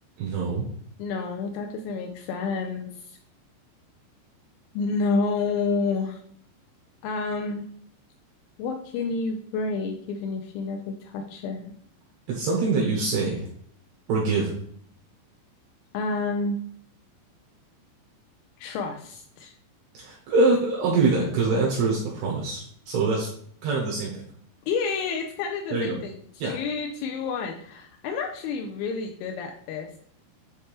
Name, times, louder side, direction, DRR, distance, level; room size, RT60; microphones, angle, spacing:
voice 1, 0.2-0.7 12.3-13.4 14.1-14.5 19.9-23.3 23.6-24.2 25.7-26.0 26.4-26.5, right 3 dB, 75° right, -3 dB, 2.5 m, -24 dB
voice 2, 1.0-3.2 4.7-6.2 7.0-7.7 8.6-11.7 15.9-16.6 18.6-19.5 24.7-30.0, left 4 dB, 85° left, 4 dB, 2.8 m, -29 dB
9.9 x 3.3 x 3.3 m, 0.62 s
omnidirectional pair, 5.9 m